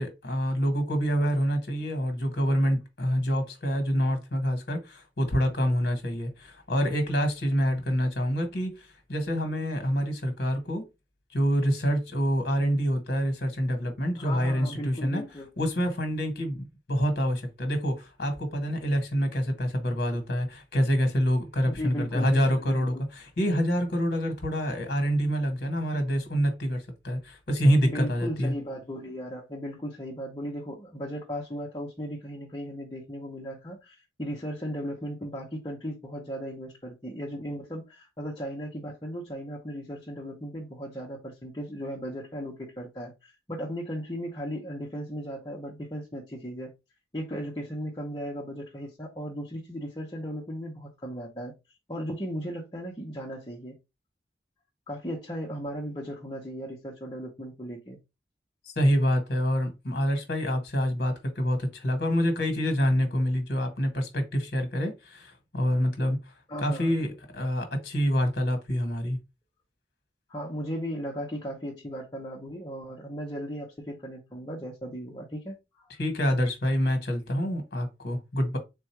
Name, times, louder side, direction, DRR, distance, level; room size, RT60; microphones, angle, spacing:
voice 1, 0.0-10.8 11.3-15.2 15.6-28.5 58.7-66.2 66.6-69.2 76.0-78.6, equal, 55° left, 1.3 m, -26 dB
voice 2, 14.1-15.5 21.6-23.0 27.8-46.7 47.1-51.5 51.9-53.8 54.9-58.0 66.5-66.9 70.3-75.9, equal, 20° left, 0.9 m, -36 dB
3.6 x 2.5 x 4.5 m
head